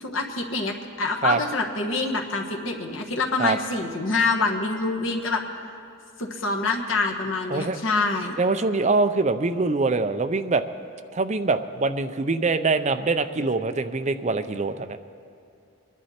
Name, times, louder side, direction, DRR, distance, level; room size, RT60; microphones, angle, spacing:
voice 1, 0.0-5.4 6.2-8.4, left 3 dB, 65° left, 1 dB, 1.4 m, -26 dB
voice 2, 8.4-10.6 11.1-15.0, right 3 dB, 30° right, 9 dB, 0.5 m, -24 dB
22.5 x 11.0 x 4.3 m, 2.5 s
head